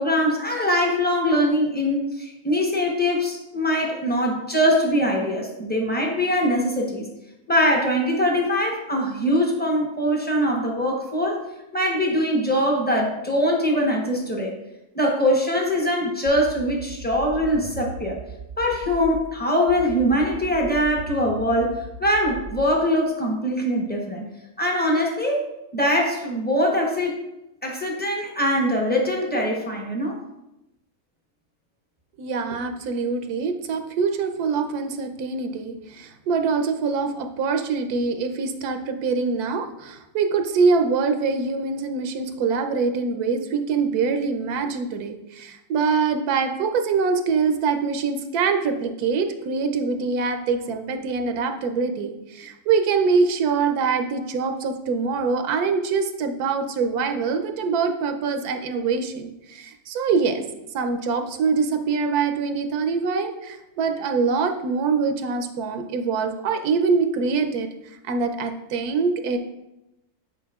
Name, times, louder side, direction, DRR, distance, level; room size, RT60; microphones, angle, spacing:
voice 1, 0.0-7.1 7.5-11.4 11.7-14.5 14.9-18.2 18.6-24.2 24.6-25.4 25.7-27.2 27.6-30.2, equal, 10° left, 0 dB, 0.6 m, -22 dB
sound 1, 16.3-19.3 19.7-22.7, right 2 dB, 55° right, 0.7 m, -38 dB
voice 2, 32.2-60.4 60.7-67.7 68.0-69.4, right 5 dB, 85° right, 7 dB, 1.1 m, -24 dB
9.0 x 4.4 x 2.3 m, 0.93 s
omnidirectional pair, 1.6 m